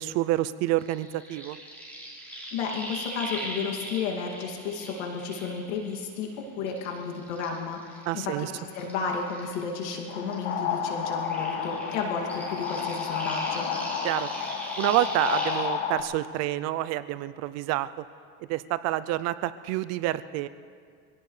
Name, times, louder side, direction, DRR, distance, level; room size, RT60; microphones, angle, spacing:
voice 1, 0.0-1.6 8.1-8.5 14.0-14.3 14.8-17.9 18.5-20.5, right 15 dB, 45° right, 15 dB, 0.5 m, -28 dB
sound 1, 0.8-6.3 6.7-10.0 10.3-15.7, right 1 dB, 5° left, 4.8 m, -40 dB
voice 2, 2.5-13.7, left 5 dB, 80° left, 0 dB, 2.5 m, -32 dB
sound 2, 10.1-16.0, left 7 dB, 60° left, 2.1 m, -31 dB
25.0 x 17.0 x 3.3 m, 2.1 s
supercardioid pair, 135°, 36 cm